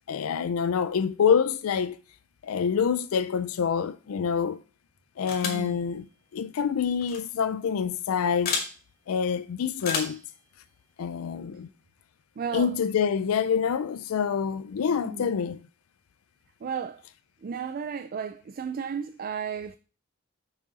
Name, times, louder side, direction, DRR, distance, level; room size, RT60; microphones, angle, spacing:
voice 1, 0.1-2.0 2.4-4.6 5.2-6.1 6.3-8.6 9.1-10.2 11.0-11.7 12.5-15.6, left 7 dB, 85° left, 0.4 m, -26 dB
sound 1, 5.3-5.7 7.0-7.2 8.4-8.7 9.8-10.2, left 5 dB, 45° left, 2.3 m, -30 dB
voice 2, 5.4-5.8 12.4-12.7 14.9-15.3 16.6-17.0 17.4-19.8, right 6 dB, 45° right, 0.4 m, -34 dB
6.4 x 6.1 x 4.1 m
head